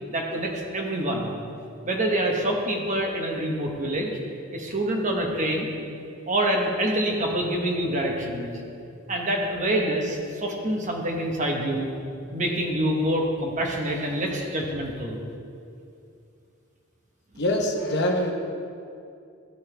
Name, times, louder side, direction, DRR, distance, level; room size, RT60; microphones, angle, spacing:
voice 1, 0.1-1.3 1.8-4.1 4.5-5.7 6.3-8.5 9.1-11.9 12.3-15.2, right 1 dB, 35° right, 0 dB, 1.1 m, -26 dB
voice 2, 17.4-18.3, left 1 dB, 55° left, 2 dB, 0.9 m, -24 dB
13.5 x 5.4 x 3.4 m, 2.5 s
head